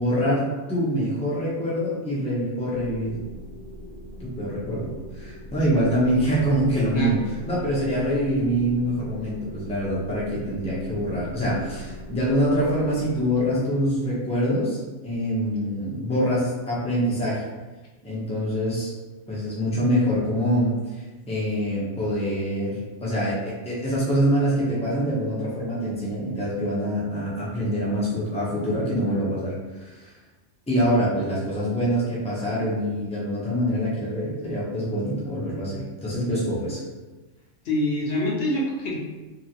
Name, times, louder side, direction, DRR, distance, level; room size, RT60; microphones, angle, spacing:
voice 1, 0.0-3.2 4.2-7.2 7.5-17.4 18.0-18.9 19.3-30.1 30.7-36.8, equal, 10° left, -6 dB, 0.4 m, -25 dB
sound 1, 2.7-13.3, left 1 dB, 20° right, 0.9 m, -40 dB
voice 2, 37.6-39.0, equal, 60° left, -3 dB, 0.9 m, -25 dB
2.8 x 2.4 x 2.8 m, 1.2 s
omnidirectional pair, 1.4 m